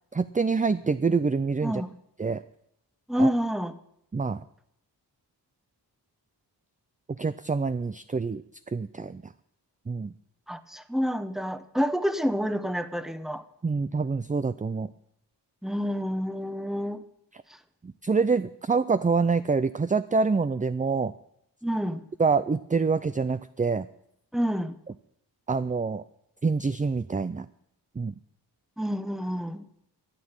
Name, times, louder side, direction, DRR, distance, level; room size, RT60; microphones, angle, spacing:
voice 1, 0.1-1.8 2.2-2.4 3.2-3.3 4.1-4.4 7.2-9.3 9.9-10.1 13.6-14.9 17.8-21.1 22.2-23.9 25.5-26.0 26.4-27.5 28.0-28.2, right 4 dB, 20° right, 14 dB, 0.4 m, -26 dB
voice 2, 1.6-1.9 3.1-3.7 10.5-13.4 15.6-17.0 17.5-17.6 21.6-22.0 24.3-24.7 28.8-29.7, equal, ahead, 12 dB, 1.0 m, -28 dB
13.5 x 8.6 x 8.9 m, 0.78 s
wide cardioid pair, 70°, 43 cm